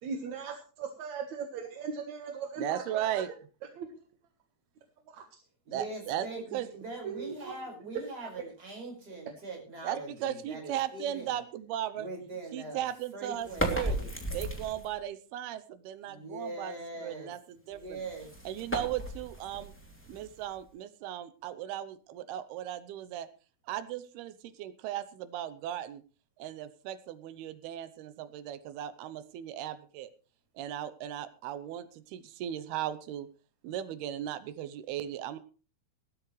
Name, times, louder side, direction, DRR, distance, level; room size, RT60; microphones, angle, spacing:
voice 1, 0.0-3.2 3.8-3.9 5.1-5.2 7.0-7.6 8.3-8.4 9.9-10.0, right 6 dB, 60° right, 4 dB, 2.3 m, -38 dB
voice 2, 2.6-3.3 5.7-6.3 6.5-6.7 9.8-12.1 12.5-14.0 14.3-18.0 18.5-19.7 20.1-23.3 23.7-26.0 26.4-30.1 30.6-33.3 33.6-35.4, right 11 dB, 90° right, 12 dB, 2.8 m, -37 dB
voice 3, 5.7-11.4 11.9-12.9 13.1-14.1 16.0-17.3 17.7-18.3, right 2 dB, 25° right, 1 dB, 5.7 m, -42 dB
sound 1, 13.4-15.0 17.7-20.7, right 1 dB, 5° left, 2.0 m, -36 dB
18.5 x 13.0 x 3.3 m, 0.36 s
omnidirectional pair, 4.5 m